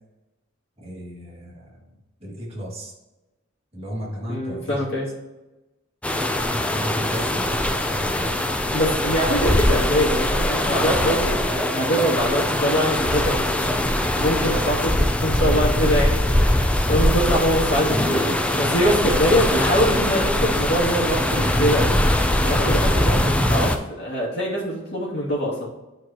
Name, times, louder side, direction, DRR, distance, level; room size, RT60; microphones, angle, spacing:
voice 1, 0.8-2.9 3.7-4.8 6.7-8.6, equal, 30° right, -5 dB, 2.1 m, -35 dB
voice 2, 4.3-5.1 8.7-13.8 14.2-21.9 22.4-25.7, equal, 55° left, -5 dB, 2.5 m, -23 dB
sound 1, 6.0-23.8, left 1 dB, 5° left, 0.4 m, -22 dB
11.0 x 4.6 x 3.0 m, 1.1 s
head